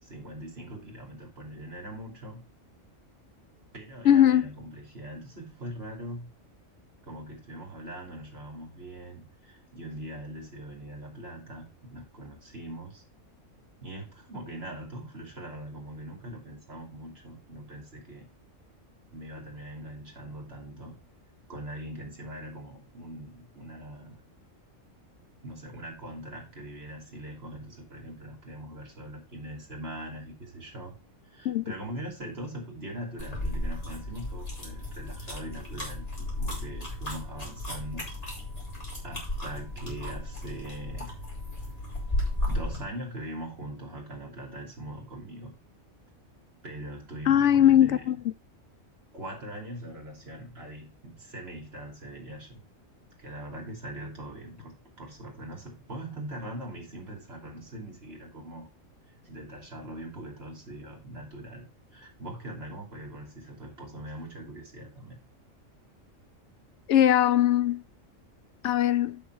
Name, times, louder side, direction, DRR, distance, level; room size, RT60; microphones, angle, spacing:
voice 1, 0.0-2.5 3.7-6.3 7.0-13.0 13.8-18.3 19.1-21.0 21.5-24.2 25.4-30.9 31.2-38.1 39.0-41.2 42.5-45.5 46.6-48.1 49.1-52.6 53.2-58.7 59.2-65.2, right 1 dB, 50° right, 3.3 m, -41 dB
voice 2, 4.0-4.4 31.4-31.7 47.3-48.2 66.9-67.8 68.6-69.2, left 11 dB, 70° left, 0.9 m, -20 dB
sound 1, 33.2-42.8, left 1 dB, 30° left, 3.1 m, -34 dB
7.4 x 6.2 x 4.7 m
omnidirectional pair, 1.4 m